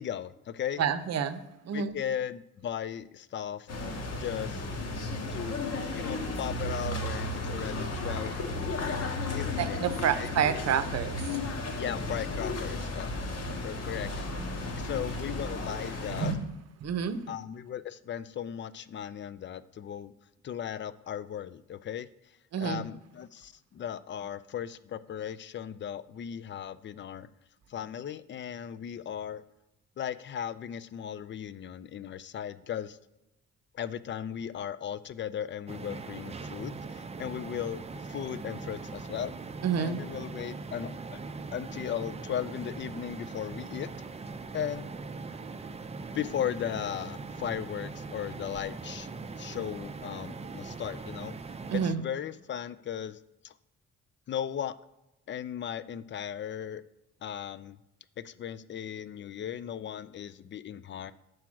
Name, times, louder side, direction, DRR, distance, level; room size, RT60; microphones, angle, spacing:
voice 1, 0.0-0.8 1.7-3.7 4.2-4.6 5.3-8.5 8.8-8.9 9.3-10.3 11.8-13.1 13.6-14.3 14.8-16.3 17.3-20.1 20.4-22.1 22.6-27.3 27.7-29.4 30.0-33.0 33.7-37.8 38.1-39.3 39.8-41.2 41.5-43.9 44.5-44.9 46.1-49.1 49.4-51.4 51.7-53.2 53.4-53.5 54.3-54.8 55.3-56.8 57.2-57.8 58.2-61.1, left 9 dB, 40° left, 16 dB, 0.4 m, -37 dB
voice 2, 0.8-2.0 9.6-11.4 13.2-13.3 16.1-16.6 16.8-17.2 22.5-22.9 39.6-40.0 51.7-52.0, right 7 dB, 55° right, 12 dB, 0.7 m, -29 dB
sound 1, 3.7-16.3, left 2 dB, 55° left, 1.2 m, -34 dB
sound 2, 35.7-51.9, right 4 dB, 20° right, 0.5 m, -41 dB
6.0 x 4.7 x 6.1 m, 0.90 s
cardioid pair, 90°, 30 cm